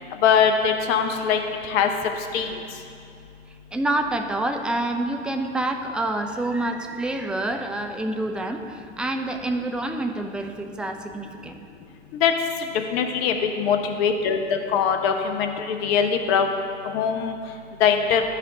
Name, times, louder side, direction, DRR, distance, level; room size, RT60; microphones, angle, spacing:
voice 1, 0.2-1.9 2.3-2.5 12.2-12.3 12.9-16.5 16.8-17.4 17.8-18.2, left 7 dB, 55° left, 5 dB, 0.9 m, -22 dB
voice 2, 3.5-11.6, right 2 dB, 5° right, 5 dB, 0.3 m, -27 dB
12.0 x 5.1 x 2.8 m, 2.3 s
figure-of-eight pair, 80°, 35 cm